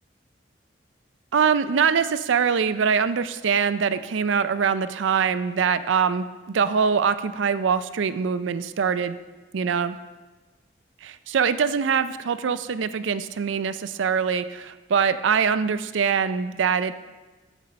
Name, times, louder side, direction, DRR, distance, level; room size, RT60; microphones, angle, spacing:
voice 1, 1.3-9.2 9.5-10.0 11.0-16.9, right 6 dB, 85° right, 13 dB, 0.4 m, -23 dB
14.5 x 5.4 x 4.1 m, 1.2 s
head